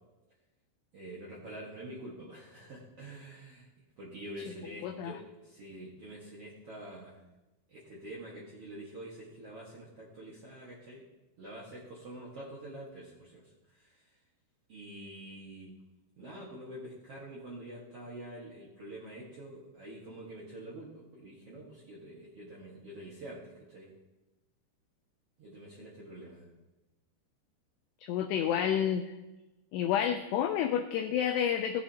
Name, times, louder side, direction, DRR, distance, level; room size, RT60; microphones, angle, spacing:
voice 1, 0.9-3.7 4.0-7.2 7.7-11.0 11.4-14.2 14.7-15.8 16.2-23.9 25.4-26.5, right 1 dB, 75° right, -6 dB, 1.3 m, -46 dB
voice 2, 4.8-5.1 28.0-29.1 29.7-31.8, left 9 dB, 85° left, 6 dB, 2.4 m, -29 dB
16.5 x 8.9 x 2.9 m, 1.1 s
omnidirectional pair, 5.4 m